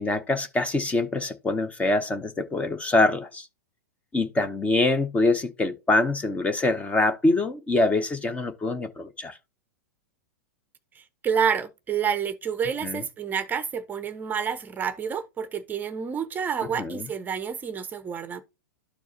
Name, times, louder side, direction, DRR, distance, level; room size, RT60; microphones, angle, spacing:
voice 1, 0.0-3.5 4.1-9.4 12.8-13.0 16.8-17.0, left 2 dB, 15° left, 0.7 m, -24 dB
voice 2, 10.9-18.4, right 7 dB, 20° right, 0.7 m, -29 dB
12.5 x 4.6 x 2.7 m
figure-of-eight pair, 100°, 9 cm